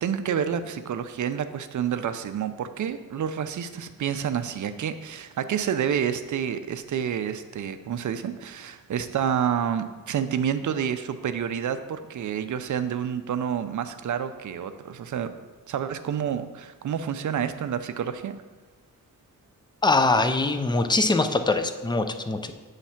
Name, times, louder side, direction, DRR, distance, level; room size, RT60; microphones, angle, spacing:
voice 1, 0.0-15.3 15.7-18.4, right 8 dB, 55° right, 10 dB, 0.5 m, -29 dB
voice 2, 19.8-22.5, left 3 dB, 15° left, 8 dB, 0.3 m, -23 dB
7.2 x 3.2 x 5.7 m, 1.3 s
wide cardioid pair, 125°, 36 cm